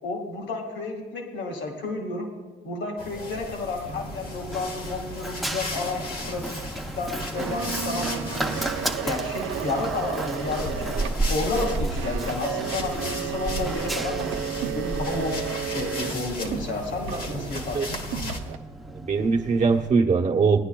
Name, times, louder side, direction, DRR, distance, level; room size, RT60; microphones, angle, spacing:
voice 1, 0.0-2.3 2.6-6.6 7.0-8.6 9.0-11.0 11.3-15.4 15.6-18.0, left 3 dB, 65° left, 2 dB, 1.9 m, -31 dB
sound 1, 3.0-18.4, left 2 dB, 45° left, 1.5 m, -37 dB
Run, 3.9-19.9, right 2 dB, ahead, 0.8 m, -34 dB
sound 2, 7.3-18.6, right 9 dB, 85° right, 0.7 m, -33 dB
voice 2, 18.9-20.6, right 4 dB, 35° right, 0 dB, 1.1 m, -21 dB
18.5 x 9.9 x 2.3 m, 1.3 s
cardioid pair, 90°, 20 cm